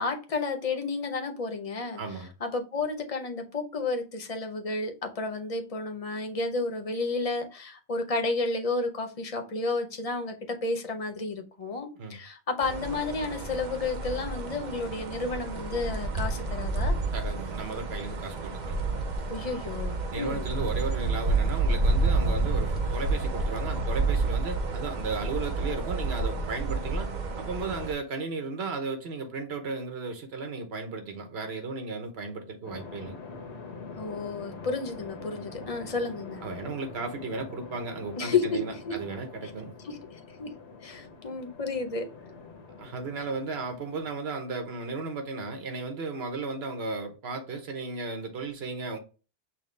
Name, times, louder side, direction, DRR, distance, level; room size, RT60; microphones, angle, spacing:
voice 1, 0.0-2.0 2.4-16.9 19.3-20.5 34.0-36.4 38.2-38.6 38.8-38.9 39.8-40.0 40.4-40.5 40.8-42.0, left 3 dB, 40° left, 0.7 m, -31 dB
voice 2, 2.0-2.3 12.0-12.2 17.1-18.8 20.1-27.1 27.4-33.1 36.4-39.7 42.8-49.0, right 3 dB, 75° right, 1.2 m, -35 dB
sound 1, 12.6-27.9, right 3 dB, 50° right, 0.8 m, -29 dB
sound 2, 32.6-44.1, left 4 dB, 90° left, 1.2 m, -44 dB
6.2 x 2.2 x 3.1 m
omnidirectional pair, 1.1 m